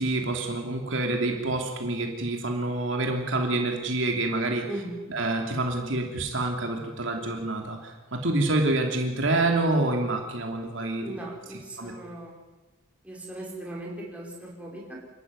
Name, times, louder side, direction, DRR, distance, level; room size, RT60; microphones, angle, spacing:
voice 1, 0.0-4.6 5.1-11.0 11.8-11.9, right 2 dB, 60° right, 2 dB, 3.0 m, -27 dB
voice 2, 4.7-5.0 11.0-12.3 13.0-15.0, right 1 dB, 5° right, -4 dB, 5.4 m, -38 dB
28.0 x 13.0 x 9.7 m, 1.2 s
head